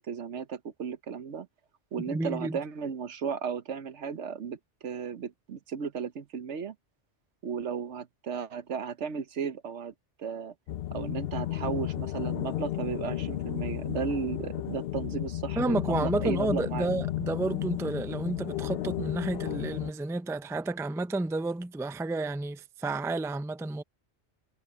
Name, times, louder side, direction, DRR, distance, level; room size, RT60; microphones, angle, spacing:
voice 1, 0.0-1.5 1.9-6.7 7.4-9.9 10.2-10.5 10.9-16.9, right 6 dB, 75° right, 1.3 m, -35 dB
voice 2, 2.1-2.6 15.6-23.8, right 2 dB, 5° right, 0.4 m, -31 dB
sound 1, 10.7-19.9, left 13 dB, 65° left, 0.8 m, -33 dB
omnidirectional pair, 1.2 m